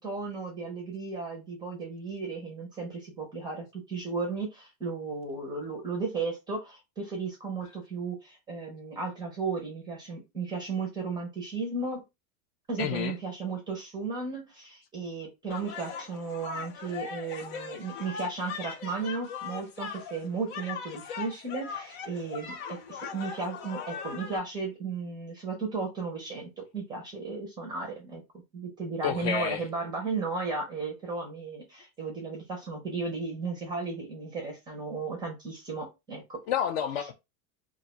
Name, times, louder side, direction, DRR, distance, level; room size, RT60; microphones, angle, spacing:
voice 1, 0.0-12.0 12.7-28.2 28.5-36.4, right 4 dB, 10° right, 0.5 m, -35 dB
voice 2, 12.8-13.1 29.0-29.6 36.5-37.1, left 8 dB, 50° left, 0.5 m, -29 dB
sound 1, 15.5-24.4, left 6 dB, 80° left, 0.9 m, -40 dB
2.5 x 2.2 x 3.9 m
supercardioid pair, 165°, 42 cm